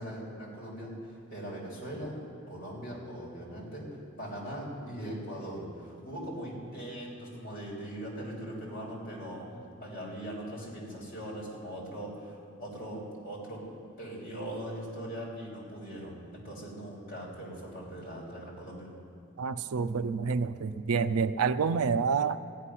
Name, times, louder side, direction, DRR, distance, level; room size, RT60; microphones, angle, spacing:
voice 1, 0.0-2.2 2.5-13.6 14.0-18.9, right 1 dB, 40° left, -4 dB, 3.5 m, -40 dB
voice 2, 19.4-22.4, right 5 dB, 85° right, 13 dB, 0.5 m, -28 dB
15.0 x 5.8 x 9.9 m, 2.4 s
head